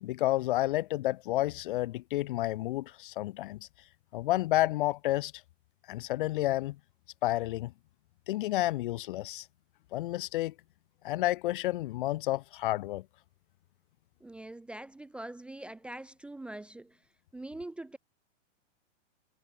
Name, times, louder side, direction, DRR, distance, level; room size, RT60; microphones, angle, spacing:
voice 1, 0.0-3.6 4.1-5.3 5.9-6.8 7.2-7.7 8.3-9.5 9.9-10.5 11.0-13.0, left 16 dB, 45° left, 0.7 m, -30 dB
voice 2, 14.2-17.0 17.3-18.0, right 1 dB, 5° right, 0.6 m, -43 dB
supercardioid pair, 160°, 37 cm